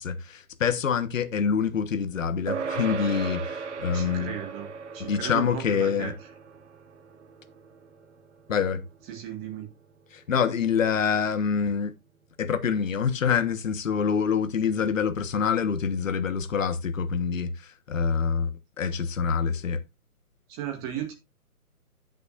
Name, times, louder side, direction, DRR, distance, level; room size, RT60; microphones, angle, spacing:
voice 1, 0.0-4.3 5.1-6.1 8.5-8.8 10.1-11.9 12.4-18.5 18.8-19.8, left 6 dB, 55° left, 1.4 m, -26 dB
sound 1, 2.5-12.2, right 5 dB, 50° right, 1.3 m, -39 dB
voice 2, 3.9-4.7 4.9-6.3 9.1-9.7 20.5-21.1, right 10 dB, 15° right, 1.9 m, -35 dB
15.5 x 6.6 x 2.5 m
hypercardioid pair, 155°, 46 cm